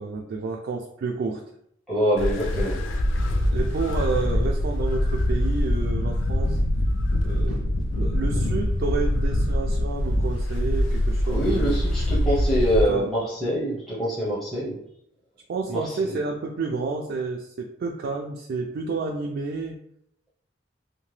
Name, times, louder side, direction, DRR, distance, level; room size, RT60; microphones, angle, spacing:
voice 1, 0.0-1.4 3.3-6.6 7.2-7.7 7.9-11.8 12.9-13.1 15.5-19.8, right 4 dB, 55° right, 0 dB, 0.3 m, -30 dB
voice 2, 1.9-2.8 11.3-14.8 15.7-16.2, equal, ahead, -9 dB, 0.7 m, -25 dB
sound 1, 2.2-12.8, left 1 dB, 85° left, 0.4 m, -24 dB
2.8 x 2.1 x 3.1 m, 0.71 s
head